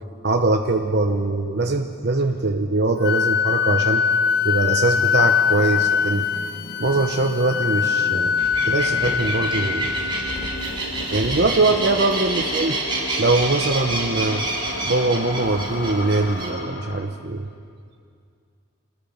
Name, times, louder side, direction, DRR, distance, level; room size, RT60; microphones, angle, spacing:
voice 1, 0.2-4.0 4.4-6.3 6.8-8.3 8.7-9.9 11.1-12.8 13.2-14.4 14.8-17.5, right 2 dB, 55° right, 4 dB, 1.0 m, -22 dB
sound 1, 1.5-1.6 1.8-17.0, left 1 dB, 70° left, 2.3 m, -36 dB
Wind instrument woodwind instrument, 3.0-10.8, left 7 dB, 50° left, 0.6 m, -22 dB
sound 2, 8.4-16.5, right 2 dB, 25° right, 3.8 m, -28 dB
26.0 x 20.0 x 5.8 m, 2.3 s
head